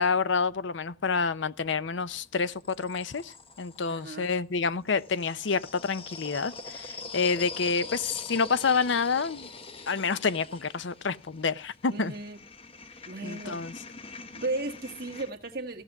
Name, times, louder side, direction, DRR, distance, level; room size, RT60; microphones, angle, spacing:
voice 1, 0.0-9.5 9.9-12.1 13.2-13.7, left 5 dB, 75° left, 0.6 m, -28 dB
sound 1, 1.6-4.1 4.9-15.3, left 4 dB, 30° left, 1.0 m, -44 dB
voice 2, 3.9-4.3 11.9-12.4 13.1-13.7 14.3-15.8, right 2 dB, 50° right, 1.6 m, -35 dB
16.0 x 6.6 x 7.1 m
head